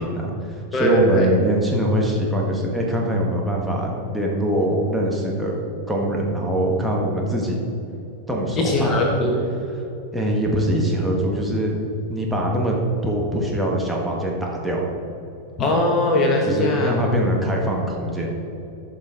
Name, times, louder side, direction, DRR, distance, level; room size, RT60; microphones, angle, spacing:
voice 1, 0.0-5.5 5.9-7.6 8.3-9.1 10.1-11.8 12.1-12.8 13.0-14.9 16.5-18.3, right 1 dB, ahead, -3 dB, 1.5 m, -23 dB
voice 2, 0.7-1.3 8.6-9.4 15.6-17.0, left 1 dB, 30° left, 1 dB, 1.2 m, -20 dB
13.0 x 5.7 x 3.9 m, 2.9 s
figure-of-eight pair, 90°, 0 cm